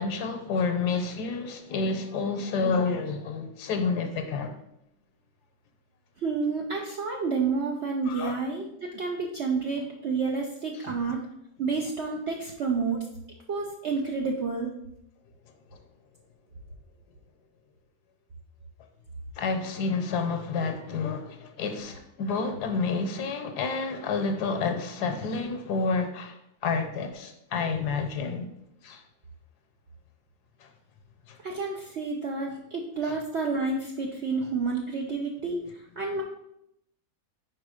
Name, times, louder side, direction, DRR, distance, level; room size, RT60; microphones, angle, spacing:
voice 1, 0.0-4.5 8.1-8.4 19.4-26.3 26.6-28.5 28.8-29.0, left 4 dB, 70° left, 1.2 m, -29 dB
voice 2, 6.2-11.3 11.6-13.1 13.5-14.7 31.4-36.2, right 4 dB, 60° right, 0.7 m, -30 dB
4.8 x 4.8 x 4.9 m
omnidirectional pair, 1.9 m